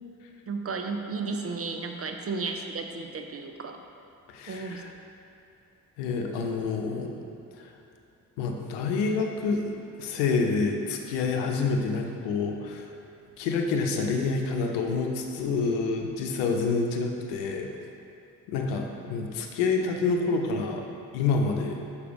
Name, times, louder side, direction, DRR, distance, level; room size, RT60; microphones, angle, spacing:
voice 1, 0.5-3.8 4.5-4.8, right 4 dB, 35° right, 5 dB, 0.7 m, -33 dB
voice 2, 4.3-4.9 6.0-7.1 7.6-7.7 8.4-9.7 10.0-12.9 13.4-17.7 18.5-20.8 21.1-21.8, left 4 dB, 75° left, 3 dB, 0.8 m, -28 dB
6.7 x 4.8 x 5.1 m, 2.7 s
hypercardioid pair, 45°, 42 cm